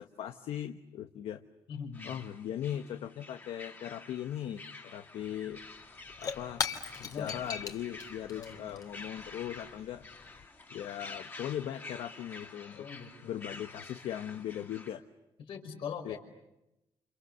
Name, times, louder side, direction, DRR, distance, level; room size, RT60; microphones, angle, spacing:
voice 1, 0.0-1.4 2.0-5.6 6.2-6.6 7.0-10.0 10.7-12.9 13.3-15.0 16.0-16.2, left 11 dB, 75° left, 8 dB, 1.2 m, -39 dB
voice 2, 1.7-2.1 7.0-7.5 8.3-8.8 12.7-13.5 15.5-16.2, left 6 dB, 60° left, 3 dB, 5.7 m, -42 dB
sound 1, 1.9-14.9, left 3 dB, 20° left, 3.1 m, -49 dB
Shatter / Crushing, 5.2-5.3 5.6-10.4, left 6 dB, 40° left, 2.6 m, -40 dB
29.5 x 28.5 x 6.8 m, 0.93 s
cardioid pair, 165°, 10 cm